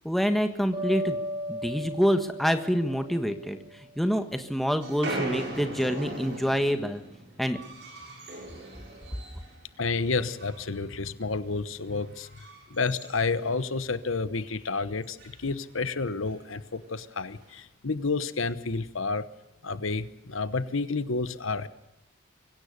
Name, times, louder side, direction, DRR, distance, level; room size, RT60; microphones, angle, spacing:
voice 1, 0.0-1.2 1.5-7.0 7.4-7.6, equal, ahead, 7 dB, 1.5 m, -27 dB
sound 1, 0.7-3.8, equal, 25° right, 5.7 m, -36 dB
sound 2, 4.8-9.6 9.9-10.9 11.2-11.5 12.0-14.0 14.3-14.4 14.6-14.7 15.0-15.4 16.3-16.4 17.2-17.6, right 2 dB, 55° right, 7.1 m, -39 dB
voice 2, 9.8-19.3 19.6-21.7, left 4 dB, 75° left, 14 dB, 1.0 m, -30 dB
24.5 x 16.5 x 6.7 m, 0.90 s
head